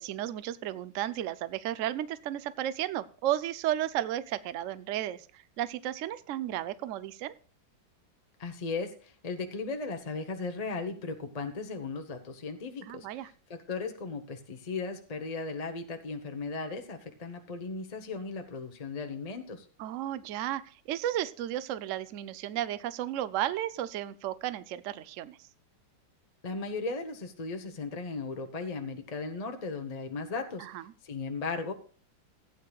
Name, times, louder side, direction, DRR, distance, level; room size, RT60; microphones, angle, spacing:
voice 1, 0.0-7.3 12.8-13.3 19.8-25.4 30.6-30.8, right 12 dB, 70° right, 15 dB, 0.7 m, -33 dB
voice 2, 8.4-19.7 26.4-30.7 31.0-31.7, left 4 dB, 30° left, 5 dB, 0.7 m, -36 dB
16.0 x 9.6 x 2.3 m, 0.41 s
omnidirectional pair, 2.1 m